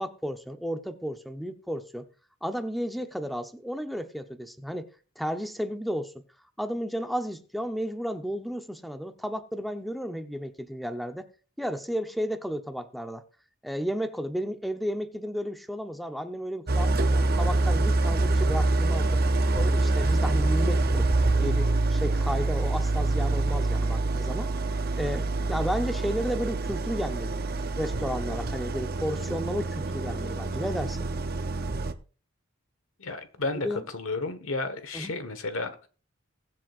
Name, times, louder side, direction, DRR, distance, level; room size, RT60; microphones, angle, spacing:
voice 1, 0.0-2.1 2.4-6.1 6.6-11.3 11.6-13.2 13.6-19.2 19.5-24.5 25.0-27.4 27.8-31.1 33.6-33.8 34.9-35.1, equal, ahead, 0.8 m, -33 dB
Idling, 16.7-31.9, right 2 dB, 45° right, 0.7 m, -26 dB
voice 2, 33.0-35.9, left 3 dB, 70° left, 1.4 m, -32 dB
21.5 x 7.6 x 2.5 m
head